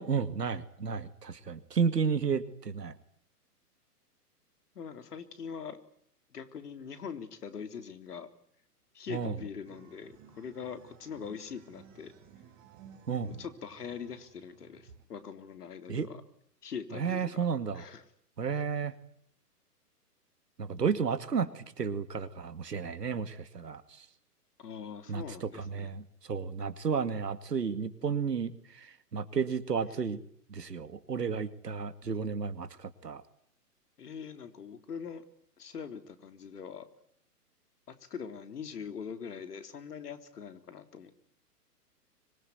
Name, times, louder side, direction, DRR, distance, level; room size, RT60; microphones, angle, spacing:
voice 1, 0.0-3.0 9.1-9.3 13.1-13.4 15.9-16.1 16.9-17.8 18.4-18.9 20.6-23.8 25.1-25.2 25.7-26.0 26.3-28.5 28.8-28.9 29.1-30.2 30.5-33.2, right 6 dB, 80° right, 12 dB, 2.5 m, -32 dB
voice 2, 4.7-5.8 6.3-8.3 8.9-12.1 13.2-16.2 16.6-17.5 17.7-18.1 24.6-25.9 34.0-35.2 35.6-36.9 37.9-41.1, left 6 dB, 70° left, 9 dB, 3.7 m, -42 dB
sound 1, 9.6-15.1, right 8 dB, 30° right, 6.5 m, -56 dB
25.0 x 23.0 x 9.5 m, 0.69 s
hypercardioid pair, 120°, 48 cm